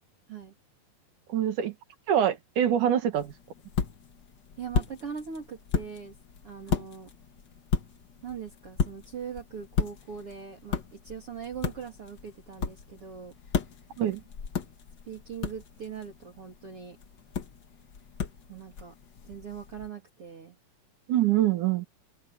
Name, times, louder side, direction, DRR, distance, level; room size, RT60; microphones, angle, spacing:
voice 1, 1.3-1.7 2.1-3.3 14.0-14.2 21.1-21.9, right 10 dB, 60° right, 3.1 m, -24 dB
sound 1, 3.1-19.9, left 6 dB, 70° left, 1.0 m, -35 dB
voice 2, 4.6-6.2 6.4-7.1 8.2-13.3 15.0-17.0 18.5-18.9 19.2-20.6, right 7 dB, 40° right, 3.4 m, -41 dB
open air
omnidirectional pair, 4.3 m